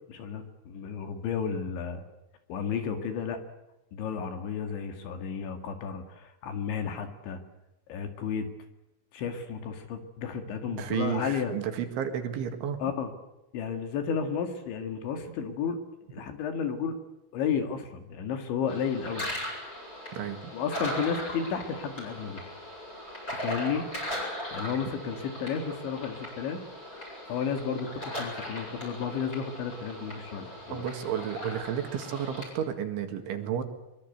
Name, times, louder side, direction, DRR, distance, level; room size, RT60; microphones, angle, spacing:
voice 1, 0.1-2.0 2.5-3.4 3.9-7.4 7.9-8.5 9.1-11.6 12.8-13.1 13.5-15.8 16.1-17.0 17.3-19.3 20.5-22.4 23.3-23.9 24.5-26.6 27.3-30.8, left 6 dB, 65° left, 7 dB, 4.2 m, -32 dB
voice 2, 10.8-12.8 20.1-20.5 30.7-33.6, right 9 dB, 70° right, 7 dB, 4.2 m, -32 dB
sound 1, 18.7-32.5, equal, 15° left, 8.2 m, -38 dB
23.5 x 23.0 x 8.1 m, 0.94 s
omnidirectional pair, 6.0 m